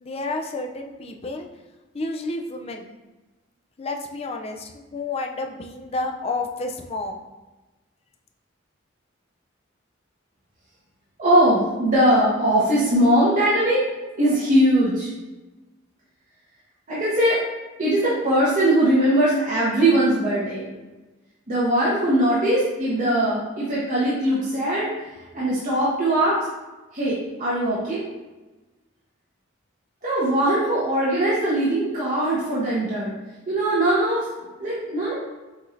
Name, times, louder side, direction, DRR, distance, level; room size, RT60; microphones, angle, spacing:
voice 1, 0.0-1.5 1.9-2.9 3.8-7.2, left 2 dB, 30° left, 4 dB, 0.4 m, -30 dB
voice 2, 11.2-13.8 14.2-15.1 16.9-17.4 17.8-20.7 21.5-24.9 25.3-26.4 26.9-28.0 30.0-33.1 33.5-34.2 34.6-35.1, right 1 dB, 40° right, -9 dB, 1.0 m, -20 dB
6.1 x 2.7 x 3.1 m, 1.1 s
head